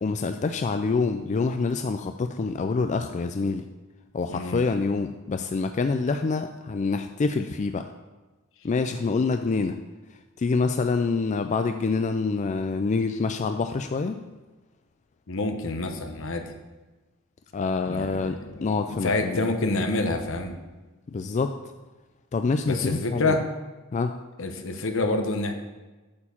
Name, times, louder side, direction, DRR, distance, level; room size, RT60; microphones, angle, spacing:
voice 1, 0.0-3.7 4.1-7.9 8.6-9.8 10.4-14.2 17.5-19.5 21.1-21.6 22.3-23.4 23.9-24.2, left 4 dB, 35° left, 7 dB, 0.3 m, -26 dB
voice 2, 4.3-4.6 15.3-16.4 17.9-20.5 22.6-23.4 24.4-25.5, left 2 dB, 65° left, 6 dB, 1.0 m, -27 dB
8.6 x 4.5 x 7.0 m, 1.2 s
head